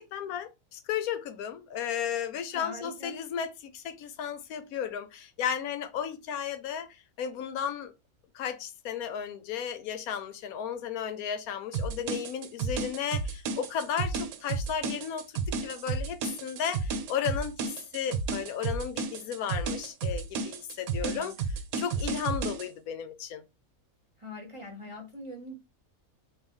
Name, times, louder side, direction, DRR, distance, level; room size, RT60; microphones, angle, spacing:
voice 1, 0.0-6.9 7.2-7.9 8.3-21.4 21.8-23.4, left 8 dB, 90° left, 1.1 m, -34 dB
voice 2, 2.5-3.1 21.0-21.4 24.2-25.5, left 1 dB, 25° right, 0.9 m, -42 dB
sound 1, 11.7-22.7, right 4 dB, 85° right, 1.1 m, -32 dB
4.4 x 2.9 x 3.5 m
omnidirectional pair, 1.5 m